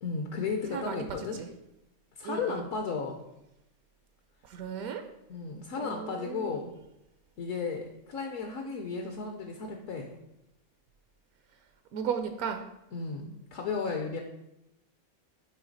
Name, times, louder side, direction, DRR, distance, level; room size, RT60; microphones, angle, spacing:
voice 1, 0.0-1.4 2.1-3.2 5.3-6.7 7.4-10.1 12.9-14.2, left 5 dB, 65° left, 2 dB, 1.0 m, -34 dB
voice 2, 0.7-1.5 2.2-2.6 4.4-5.0 5.8-6.6 11.9-12.6, right 7 dB, 80° right, 6 dB, 1.0 m, -35 dB
9.0 x 3.1 x 3.9 m, 0.88 s
omnidirectional pair, 1.5 m